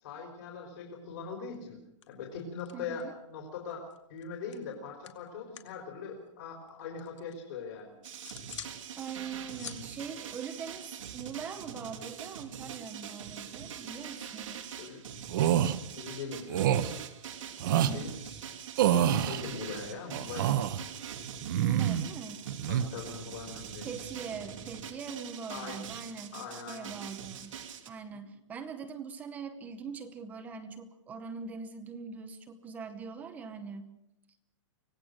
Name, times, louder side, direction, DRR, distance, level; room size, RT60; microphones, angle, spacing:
voice 1, 0.0-1.8 2.1-7.9 14.8-15.0 15.9-16.7 17.8-18.4 18.9-20.5 22.1-22.3 22.7-24.0 25.5-25.8 26.3-27.0 28.1-28.2, left 5 dB, 45° left, 1 dB, 4.0 m, -41 dB
sound 1, 1.5-1.8 2.0-3.2 3.5-5.8 6.1-7.4 7.8-8.8 9.1-11.2, left 9 dB, 70° left, 2.4 m, -49 dB
voice 2, 2.7-3.1 9.0-14.8 17.7-18.1 21.5-22.5 23.8-27.6 27.9-33.9, right 5 dB, 10° right, 9 dB, 0.8 m, -42 dB
sound 2, 8.0-27.9, right 8 dB, 90° right, 2.8 m, -43 dB
sound 3, 15.3-15.7 16.5-16.9 17.6-17.9 18.8-19.4 20.1-20.8 21.4-22.1 22.4-22.8, right 10 dB, 40° right, 1.0 m, -26 dB
25.0 x 18.0 x 6.5 m, 0.86 s
hypercardioid pair, 180°, 16 cm